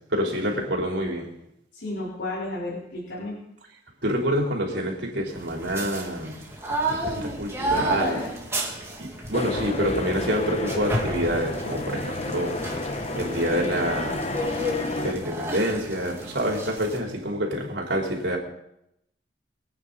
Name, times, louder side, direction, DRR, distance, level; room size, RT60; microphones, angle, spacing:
voice 1, 0.1-1.3 4.0-6.4 6.9-8.2 9.0-12.7 13.1-14.4 15.0-18.4, equal, 75° right, 3.9 m, -27 dB
voice 2, 1.7-3.3 7.7-8.3, left 2 dB, 85° left, 4.2 m, -32 dB
sound 1, 5.3-17.0, right 1 dB, 15° right, 2.4 m, -32 dB
sound 2, 9.3-15.1, left 2 dB, 35° left, 1.0 m, -31 dB
25.0 x 9.3 x 4.1 m
head